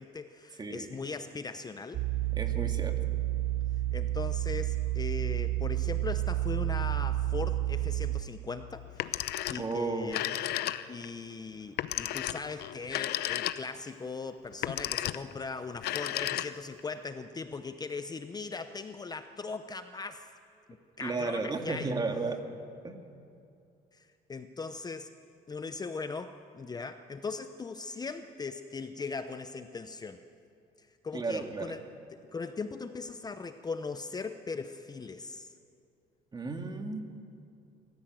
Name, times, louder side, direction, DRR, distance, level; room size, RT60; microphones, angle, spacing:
voice 1, 0.0-2.0 3.9-9.1 9.5-10.2 10.9-20.3 21.0-21.9 23.9-25.1 25.5-30.2 31.0-31.8 32.1-35.5, left 4 dB, 25° left, 9 dB, 0.7 m, -39 dB
voice 2, 0.6-0.9 2.3-3.0 9.6-10.3 21.0-22.4 22.8-23.0 31.1-31.8 36.3-37.0, right 3 dB, 25° right, 5 dB, 2.1 m, -34 dB
sound 1, 1.9-8.2, right 15 dB, 60° right, 1.0 m, -30 dB
Telephone, 8.9-9.7 10.0-11.1 11.8-13.9 14.5-15.3 15.8-16.8, left 14 dB, 75° left, 0.7 m, -33 dB
26.5 x 14.5 x 7.7 m, 2.5 s
cardioid pair, 110°, 17 cm